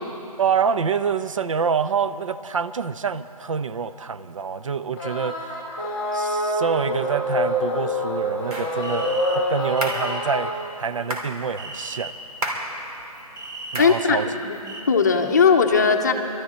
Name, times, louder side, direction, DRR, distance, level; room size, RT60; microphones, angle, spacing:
voice 1, 0.4-5.6 6.1-12.1 13.7-14.3, right 6 dB, 55° right, 13 dB, 0.5 m, -26 dB
sound 1, 5.0-10.4, left 1 dB, ahead, 2.3 m, -26 dB
sound 2, 8.4-14.8, right 2 dB, 30° right, 1.3 m, -39 dB
sound 3, 8.5-8.8 9.8-10.1 11.1-11.4 12.4-12.7 13.7-14.0, right 1 dB, 80° right, 2.8 m, -29 dB
voice 2, 13.8-14.2 14.4-14.6 14.9-16.1, left 5 dB, 30° left, 4 dB, 0.7 m, -18 dB
22.0 x 13.0 x 4.3 m, 2.8 s
hypercardioid pair, 170°, 19 cm